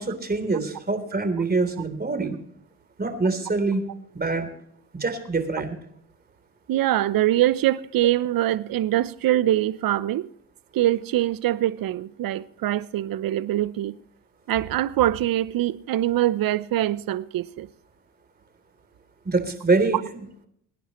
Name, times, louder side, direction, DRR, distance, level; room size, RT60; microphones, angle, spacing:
voice 1, 0.0-2.4 3.0-3.8 4.1-4.5 4.9-5.8 19.3-20.3, right 3 dB, 25° right, 3.4 m, -25 dB
voice 2, 6.7-10.3 10.7-14.0 14.5-17.7, right 13 dB, 65° right, 0.8 m, -23 dB
24.0 x 10.0 x 3.1 m
supercardioid pair, 65°, 38 cm